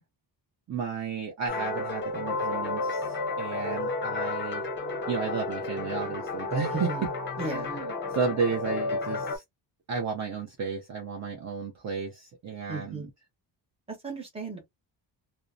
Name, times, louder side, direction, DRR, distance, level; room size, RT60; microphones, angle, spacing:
voice 1, 0.7-4.6 5.1-6.9 7.4-9.4 9.9-13.1, right 5 dB, 40° right, 0.6 m, -33 dB
sound 1, 1.5-9.4, left 3 dB, 25° left, 0.7 m, -32 dB
voice 2, 6.7-7.1 7.4-7.7 12.7-13.1 14.0-14.7, right 4 dB, 15° right, 1.0 m, -35 dB
2.7 x 2.1 x 2.4 m
wide cardioid pair, 170°, 43 cm